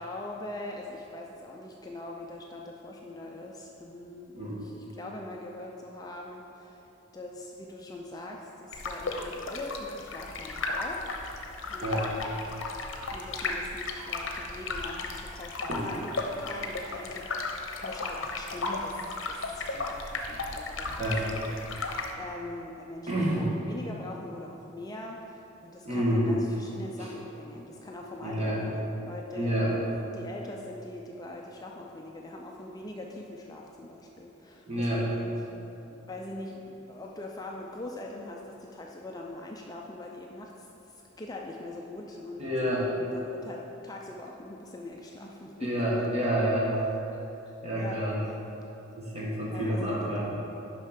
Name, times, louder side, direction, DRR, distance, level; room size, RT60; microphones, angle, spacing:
voice 1, 0.0-6.9 7.1-11.4 11.7-12.1 13.1-35.5 35.8-46.1 47.7-48.0 48.3-48.4 49.5-50.1, left 1 dB, 20° left, 0 dB, 0.4 m, -42 dB
sound 1, 8.7-22.1, left 3 dB, 65° left, 0.7 m, -35 dB
voice 2, 23.1-23.4 25.8-26.3 27.0-27.1 28.2-28.6 29.3-29.8 34.7-35.0 42.4-42.9 45.6-46.7 47.6-48.2 49.0-50.2, right 1 dB, 30° right, -6 dB, 1.6 m, -28 dB
6.6 x 5.5 x 5.1 m, 3.0 s
head